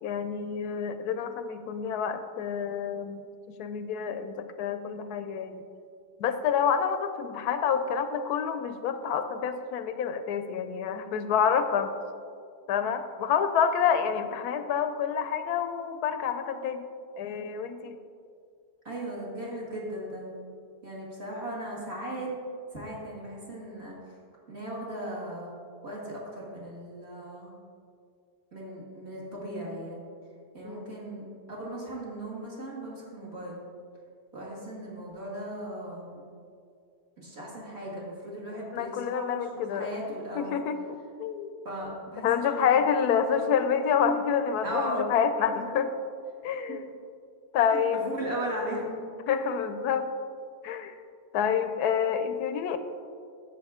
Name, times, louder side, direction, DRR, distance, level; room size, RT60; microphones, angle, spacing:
voice 1, 0.0-5.6 6.2-12.0 12.7-16.8 17.2-18.0 30.6-30.9 38.7-39.9 40.4-41.5 42.2-45.9 46.4-46.8 47.5-48.1 49.3-50.1 50.6-50.9 51.3-52.8, left 7 dB, 80° left, 10 dB, 1.1 m, -28 dB
voice 2, 18.8-20.4 20.8-22.3 22.7-24.0 24.5-25.5 25.8-27.5 28.5-30.1 30.5-33.6 34.3-36.2 37.2-40.6 41.6-42.8 43.3-43.6 44.0-44.1 44.6-45.1 45.5-45.6 46.7-46.8 47.7-49.0, right 1 dB, 40° right, -5 dB, 2.2 m, -37 dB
10.5 x 7.6 x 3.6 m, 2.3 s
omnidirectional pair, 1.7 m